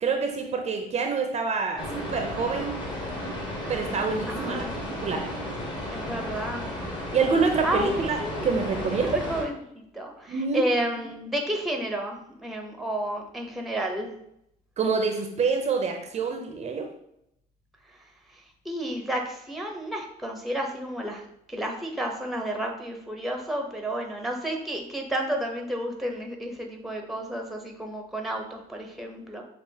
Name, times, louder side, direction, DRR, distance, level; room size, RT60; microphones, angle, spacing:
voice 1, 0.0-2.8 3.7-5.2 7.1-8.2 8.4-9.2 10.3-10.6 14.8-16.9, right 5 dB, 40° right, 4 dB, 0.6 m, -26 dB
sound 1, 1.8-9.4, left 1 dB, 30° left, 1.3 m, -34 dB
voice 2, 4.3-4.8 5.9-6.7 7.6-8.5 8.8-14.1 18.6-21.2 21.5-29.4, right 1 dB, ahead, 2 dB, 0.8 m, -31 dB
6.8 x 2.4 x 2.8 m, 0.76 s
cardioid pair, 110°, 17 cm